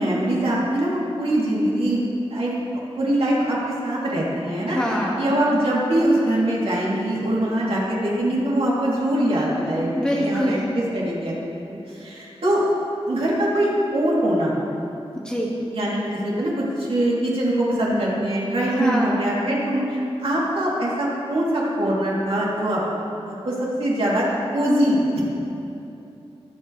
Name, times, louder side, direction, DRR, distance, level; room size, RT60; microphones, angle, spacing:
voice 1, 0.0-2.0 2.3-2.5 3.0-4.8 5.2-11.5 11.9-12.6 13.1-14.5 15.7-22.8 23.3-24.3 24.5-25.2, right 1 dB, 70° right, -6 dB, 3.5 m, -23 dB
voice 2, 4.7-5.3 9.9-10.6 15.2-15.5 18.7-19.2, equal, 10° left, -5 dB, 2.2 m, -24 dB
23.5 x 9.0 x 3.4 m, 2.8 s
wide cardioid pair, 120°, 10 cm